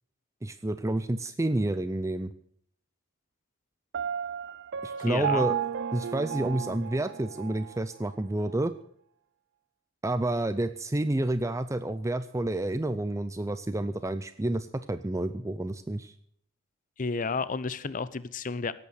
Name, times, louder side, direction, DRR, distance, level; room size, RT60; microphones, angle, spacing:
voice 1, 0.4-2.3 4.8-5.6 5.9-8.7 10.0-16.1, right 1 dB, 15° right, 11 dB, 0.5 m, -29 dB
Piano, 3.9-7.8, right 9 dB, 60° right, 0.5 m, -33 dB
voice 2, 5.1-5.5 17.0-18.7, left 4 dB, 40° left, 16 dB, 0.6 m, -31 dB
17.5 x 8.5 x 6.6 m, 0.65 s
head